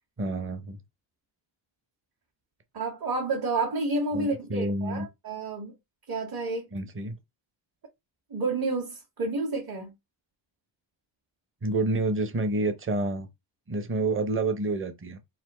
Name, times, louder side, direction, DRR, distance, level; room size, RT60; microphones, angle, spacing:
voice 1, 0.2-0.8 4.1-5.1 6.7-7.2 11.6-13.3 13.7-15.2, right 2 dB, 25° right, 0.8 m, -28 dB
voice 2, 2.7-5.8 6.1-6.7 8.3-9.9, right 3 dB, 50° right, 1.8 m, -30 dB
4.2 x 2.7 x 4.3 m
cardioid pair, 160°, 47 cm